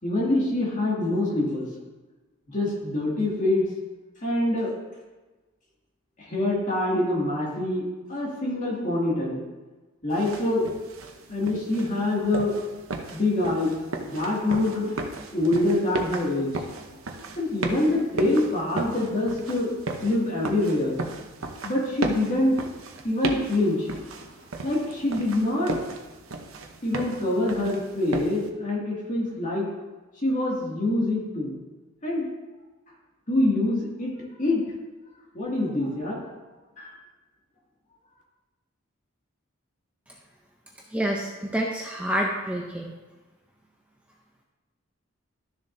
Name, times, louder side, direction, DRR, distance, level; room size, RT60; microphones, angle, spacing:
voice 1, 0.0-1.6 2.5-3.7 4.2-4.7 6.2-9.4 10.0-10.6 11.3-12.5 13.1-14.9 15.3-16.5 17.4-19.8 20.0-21.0 21.6-22.6 23.0-23.9 24.6-25.8 26.8-29.7 30.2-31.6 32.0-32.3 33.3-34.1 34.4-34.6 35.3-36.3 36.8-36.9, left 1 dB, 35° left, -4 dB, 2.2 m, -25 dB
sound 1, 10.1-28.5, right 3 dB, 80° right, 0.9 m, -35 dB
voice 2, 40.9-42.9, right 1 dB, 5° right, -1 dB, 0.6 m, -28 dB
12.5 x 6.9 x 2.7 m, 1.2 s
head